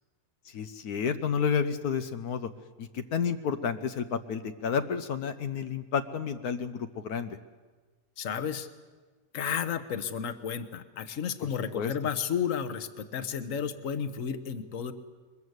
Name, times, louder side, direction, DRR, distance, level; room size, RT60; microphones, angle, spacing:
voice 1, 0.5-2.5 2.8-7.4 11.4-11.5 11.7-11.9, left 6 dB, 85° left, 9 dB, 1.4 m, -31 dB
voice 2, 8.2-8.7 9.3-14.9, left 7 dB, 60° left, 10 dB, 1.5 m, -32 dB
22.5 x 21.5 x 8.1 m, 1.4 s
omnidirectional pair, 1.6 m